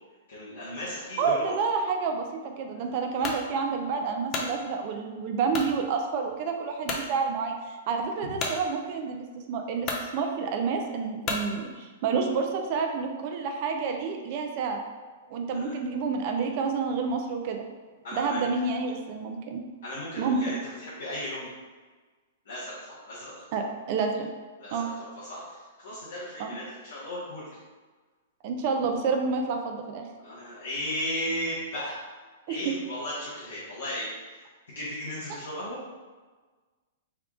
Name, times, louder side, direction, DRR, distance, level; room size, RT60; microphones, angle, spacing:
voice 1, 0.3-1.5 8.2-8.4 15.5-15.7 18.0-18.5 19.8-21.5 22.4-23.5 24.6-24.9 25.2-27.5 30.2-32.0 32.5-34.1 34.7-35.8, left 1 dB, 85° left, -11 dB, 1.2 m, -35 dB
voice 2, 1.2-14.8 15.3-17.6 18.1-19.6 20.2-20.4 23.5-24.3 24.7-24.9 26.4-26.6 28.4-30.1 31.8-31.9 32.5-32.6, right 5 dB, 50° right, 3 dB, 0.4 m, -29 dB
sound 1, 3.2-3.4 4.0-4.5 5.5-5.7 6.3-6.4 6.8-7.1 8.4-8.6 9.4-9.5 9.8-10.1 11.2-11.5, left 3 dB, 30° left, 0.6 m, -31 dB
3.5 x 2.3 x 3.6 m, 1.4 s
hypercardioid pair, 135°, 0 cm